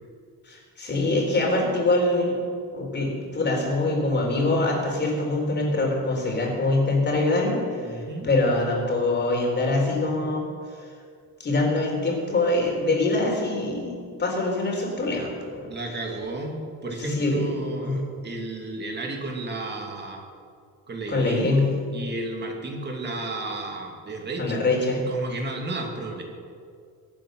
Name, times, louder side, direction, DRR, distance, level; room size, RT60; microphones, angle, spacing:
voice 1, 0.4-2.4 2.7-7.9 8.2-10.4 11.4-15.7 16.9-17.5 17.8-18.1 21.1-21.7 24.4-25.0, left 2 dB, 25° left, -1 dB, 4.0 m, -24 dB
voice 2, 7.8-8.3 15.7-20.2 20.9-21.5 21.9-24.6 25.1-26.2, right 2 dB, 25° right, 1 dB, 2.6 m, -33 dB
23.0 x 8.7 x 6.5 m, 2.2 s
cardioid pair, 165°, 39 cm